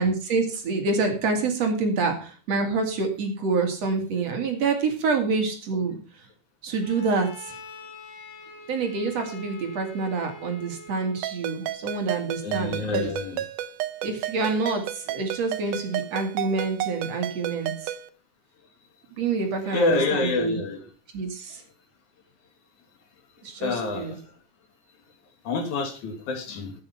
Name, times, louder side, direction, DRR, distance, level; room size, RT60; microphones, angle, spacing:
voice 1, 0.0-6.0 6.6-7.5 8.7-13.1 14.0-17.9 19.2-20.6 21.1-21.6 23.4-24.2, right 4 dB, 55° right, 4 dB, 3.1 m, -27 dB
Bowed string instrument, 6.8-11.4, left 1 dB, 90° left, 3.0 m, -44 dB
Ringtone, 11.2-18.1, right 12 dB, 90° right, 2.2 m, -32 dB
voice 2, 12.4-13.4 19.6-20.8 23.6-24.2 25.4-26.7, left 3 dB, 70° left, 5 dB, 3.5 m, -27 dB
11.5 x 8.6 x 5.6 m, 0.37 s
omnidirectional pair, 3.6 m